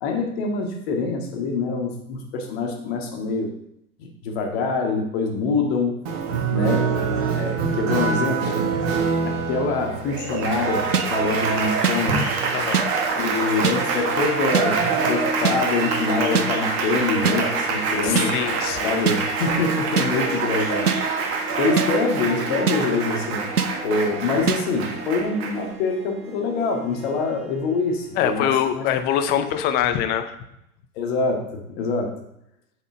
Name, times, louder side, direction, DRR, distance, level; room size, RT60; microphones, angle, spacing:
voice 1, 0.0-3.5 4.0-6.1 6.5-6.9 7.3-8.5 9.3-12.3 13.2-18.3 18.8-20.9 21.6-23.5 23.8-28.9 31.0-32.2, left 3 dB, 45° left, 3 dB, 1.9 m, -25 dB
Applause, 6.1-25.7, right 5 dB, 45° right, 1.7 m, -25 dB
sound 1, 10.9-11.1 11.8-12.0 12.7-12.9 13.6-13.8 14.5-14.7 15.4-15.6 16.3-16.5 17.2-17.4 18.1-18.3 19.1-19.2 20.0-20.1 20.9-21.0 21.8-21.9 22.7-22.8 23.6-23.7 24.5-24.6, right 6 dB, 85° right, 0.7 m, -21 dB
Harp, 12.0-28.8, right 1 dB, 15° right, 1.6 m, -34 dB
voice 2, 12.5-12.8 18.0-18.9 28.2-30.3, left 10 dB, 20° left, 9 dB, 0.6 m, -23 dB
7.6 x 7.4 x 4.5 m, 0.79 s
figure-of-eight pair, 95°, 44 cm